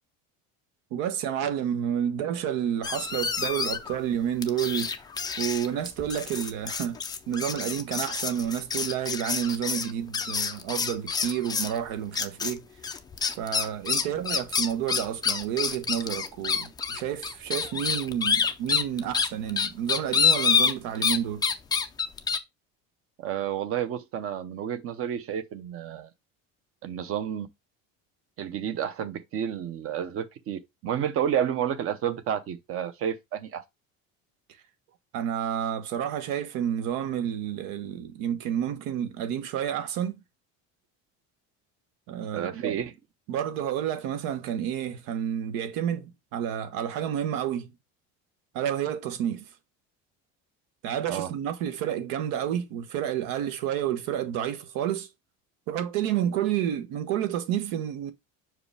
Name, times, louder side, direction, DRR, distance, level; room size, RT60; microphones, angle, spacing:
voice 1, 0.9-5.0 5.4-7.0 7.3-12.7 13.3-21.5 35.1-40.1 42.1-42.7 43.3-47.7 48.5-49.5 50.8-55.1 55.7-58.1, right 10 dB, 80° right, 1.2 m, -30 dB
sound 1, 2.8-4.0 4.4-11.8 12.1-12.5 12.8-21.2 21.4-22.4, left 6 dB, 10° left, 0.4 m, -27 dB
voice 2, 23.2-26.1 26.8-27.5 28.4-33.6 42.3-42.9 51.1-51.3, right 9 dB, 40° right, 0.8 m, -30 dB
6.0 x 4.9 x 3.3 m
cardioid pair, 160°, 34 cm